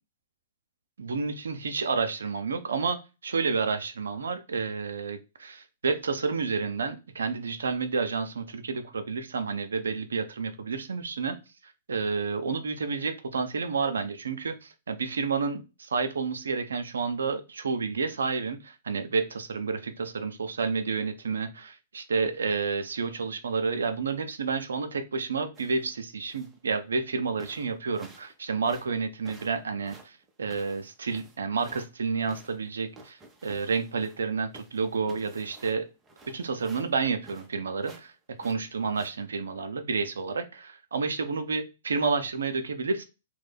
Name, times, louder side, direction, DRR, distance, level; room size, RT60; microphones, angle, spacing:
voice 1, 1.0-11.4 11.6-35.9 36.3-38.1 38.4-43.0, right 4 dB, 85° right, 8 dB, 0.5 m, -30 dB
sound 1, 25.5-25.9 26.3-26.6 27.1-27.2 27.4-28.3 28.6-31.9 32.3-34.3 34.5-37.5 37.8-38.1 38.4-39.1, right 3 dB, 20° right, 0.7 m, -52 dB
3.1 x 2.1 x 3.4 m, 0.28 s
hypercardioid pair, 125°, 0 cm